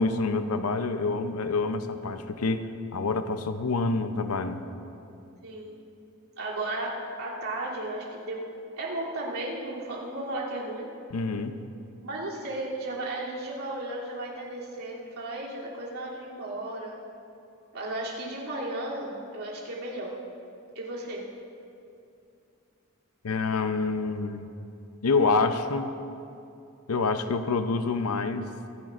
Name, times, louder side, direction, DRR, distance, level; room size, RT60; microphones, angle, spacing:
voice 1, 0.0-2.6 2.9-4.6 11.1-11.6 23.2-24.5 25.0-25.9 26.9-28.5, left 3 dB, 85° left, 9 dB, 0.7 m, -27 dB
voice 2, 5.4-5.8 6.4-8.4 8.8-10.9 12.0-16.9 17.7-20.1 20.7-21.2, right 1 dB, 80° right, -6 dB, 3.0 m, -34 dB
25.5 x 10.5 x 2.5 m, 2.6 s
head